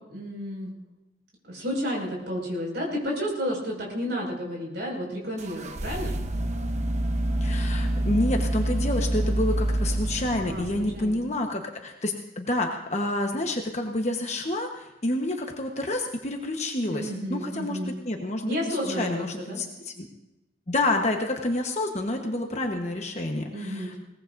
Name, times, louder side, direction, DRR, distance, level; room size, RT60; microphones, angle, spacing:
voice 1, 0.1-0.7 1.4-6.2 10.5-10.6 10.9-11.2 16.9-17.9 18.5-19.6 23.5-23.9, equal, 70° right, -2 dB, 5.8 m, -31 dB
sound 1, 5.4-11.3, right 1 dB, 40° right, 0.9 m, -27 dB
voice 2, 7.4-20.1 20.7-23.9, left 1 dB, 40° left, 2 dB, 1.2 m, -29 dB
22.0 x 18.5 x 2.6 m, 0.98 s
head